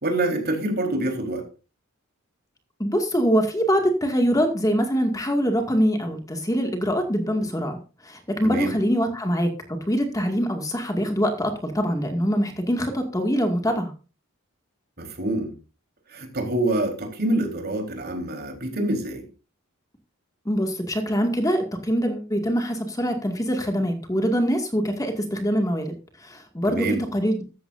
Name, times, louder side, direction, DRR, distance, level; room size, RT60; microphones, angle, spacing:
voice 1, 0.0-1.4 8.4-8.7 15.0-15.5 16.1-19.2 26.7-27.0, right 1 dB, 45° right, 3 dB, 3.9 m, -26 dB
voice 2, 2.8-9.5 9.9-13.9 20.5-25.9 26.2-27.4, equal, 15° left, 4 dB, 2.1 m, -24 dB
14.5 x 13.5 x 2.6 m, 0.32 s
head